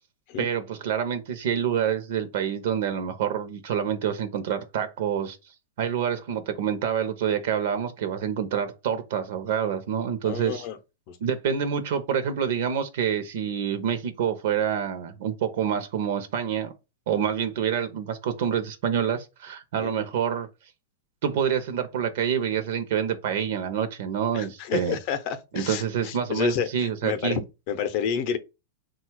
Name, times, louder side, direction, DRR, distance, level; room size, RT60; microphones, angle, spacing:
voice 1, 0.4-5.4 5.8-10.7 11.2-16.7 17.1-20.5 21.2-25.0 25.5-27.4, right 8 dB, 60° right, 0.6 m, -27 dB
voice 2, 10.2-10.8 11.1-11.2 19.8-19.9 24.3-27.4 27.7-28.4, left 7 dB, 45° left, 0.6 m, -29 dB
3.8 x 2.3 x 4.5 m
supercardioid pair, 155°, 0 cm